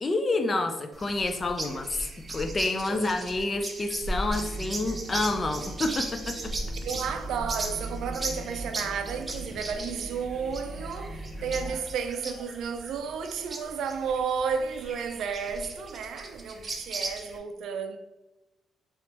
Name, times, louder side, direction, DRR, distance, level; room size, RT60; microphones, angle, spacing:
voice 1, 0.0-6.5, left 2 dB, 30° left, 0.4 m, -29 dB
sound 1, 0.9-17.4, right 2 dB, 30° right, 0.5 m, -37 dB
sound 2, 4.3-11.7, right 1 dB, 70° left, 1.0 m, -40 dB
voice 2, 6.8-18.0, right 6 dB, 75° right, 0.4 m, -32 dB
3.4 x 3.0 x 2.8 m
cardioid pair, 90°, 0 cm